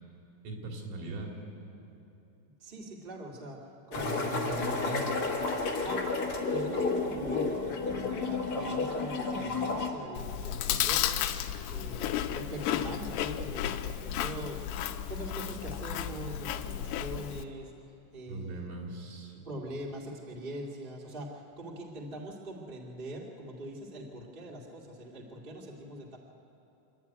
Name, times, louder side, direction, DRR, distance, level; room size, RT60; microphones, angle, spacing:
voice 1, 0.5-1.3 3.9-5.3 18.3-19.4, right 2 dB, 80° right, 0 dB, 5.5 m, -39 dB
voice 2, 2.6-3.6 3.9-4.9 5.8-6.2 6.5-11.1 11.7-14.6 15.1-17.7 18.1-18.9 19.4-26.2, right 1 dB, 35° right, -3 dB, 0.9 m, -42 dB
sound 1, 3.9-9.9, left 3 dB, 65° left, 1.3 m, -31 dB
Chewing mastication, 10.1-17.4, left 10 dB, 90° left, 2.3 m, -33 dB
26.5 x 12.0 x 9.4 m, 2.9 s
omnidirectional pair, 5.5 m